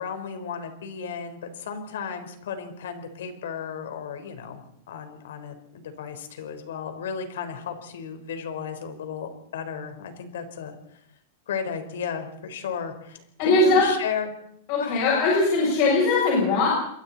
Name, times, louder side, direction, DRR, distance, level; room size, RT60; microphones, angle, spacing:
voice 1, 0.0-4.6 4.9-10.7 11.5-14.3 14.8-15.0, left 7 dB, 80° left, 7 dB, 4.3 m, -34 dB
voice 2, 13.4-13.9 14.7-16.7, left 3 dB, 35° left, -4 dB, 7.6 m, -20 dB
28.5 x 22.5 x 4.3 m, 0.69 s
supercardioid pair, 175°, 0 cm